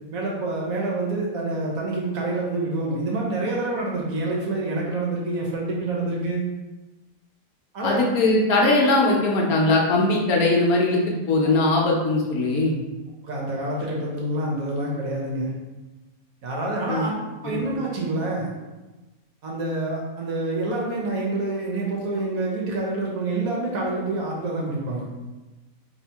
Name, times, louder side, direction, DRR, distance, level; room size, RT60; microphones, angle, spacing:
voice 1, 0.1-6.5 7.7-8.1 11.4-11.6 12.6-12.7 13.2-15.5 16.4-17.1 17.4-18.5 19.4-25.0, right 2 dB, 65° right, -3 dB, 1.1 m, -27 dB
voice 2, 7.8-12.7 16.9-17.0 17.5-17.6, left 2 dB, 70° left, -2 dB, 1.0 m, -20 dB
2.8 x 2.7 x 4.4 m, 1.1 s
omnidirectional pair, 1.8 m